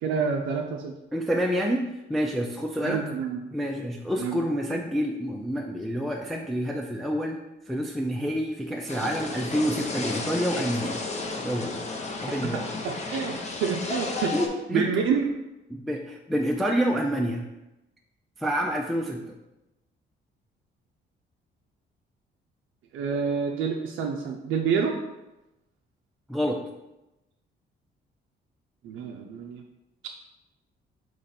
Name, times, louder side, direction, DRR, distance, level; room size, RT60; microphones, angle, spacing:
voice 1, 0.0-0.9 2.8-3.4 4.2-4.4 12.5-14.3 14.7-15.3 22.9-24.9 28.8-29.6, right 6 dB, 85° right, 1 dB, 0.5 m, -28 dB
voice 2, 1.1-3.0 3.5-7.4 7.7-11.0 11.4-11.8 12.2-12.7 14.3-14.9 15.7-17.5 18.4-19.3 26.3-26.6, equal, ahead, 0 dB, 0.4 m, -28 dB
sound 1, 8.9-14.5, left 3 dB, 35° left, 0.7 m, -33 dB
3.8 x 3.1 x 4.2 m, 0.97 s
cardioid pair, 90°, 20 cm